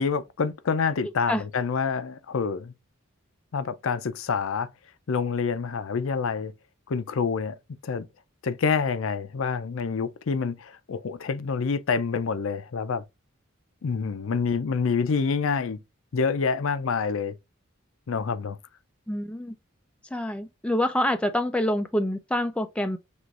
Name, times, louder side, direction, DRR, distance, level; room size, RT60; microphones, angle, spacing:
voice 1, 0.0-2.7 3.5-4.7 5.1-6.5 6.9-7.5 7.8-8.1 8.4-13.0 13.8-15.8 16.1-17.3 18.1-18.6, left 5 dB, 75° left, 0.5 m, -27 dB
voice 2, 19.1-19.5 20.1-23.0, left 1 dB, 5° left, 0.4 m, -26 dB
6.2 x 3.0 x 2.4 m
head